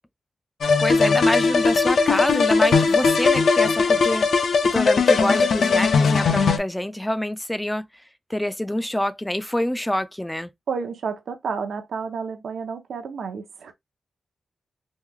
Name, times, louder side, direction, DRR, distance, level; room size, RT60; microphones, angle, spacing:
sound 1, 0.6-6.6, left 4 dB, 70° left, 0.5 m, -19 dB
voice 1, 0.8-4.3 4.6-7.9 8.3-10.5, left 1 dB, 5° left, 0.3 m, -26 dB
voice 2, 10.7-13.7, right 5 dB, 80° right, 0.6 m, -30 dB
3.1 x 2.2 x 3.6 m
wide cardioid pair, 170°, 0 cm